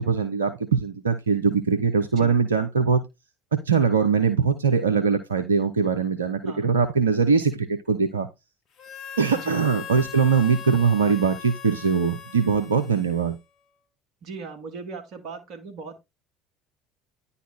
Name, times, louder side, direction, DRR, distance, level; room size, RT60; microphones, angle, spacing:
voice 1, 0.0-3.0 3.5-8.3 9.2-13.4, right 5 dB, 85° right, 0.6 m, -22 dB
Harmonica, 8.8-13.6, left 9 dB, 50° left, 1.4 m, -40 dB
voice 2, 14.2-16.0, right 4 dB, 55° right, 2.1 m, -38 dB
10.0 x 4.2 x 4.1 m
hypercardioid pair, 65°, 0 cm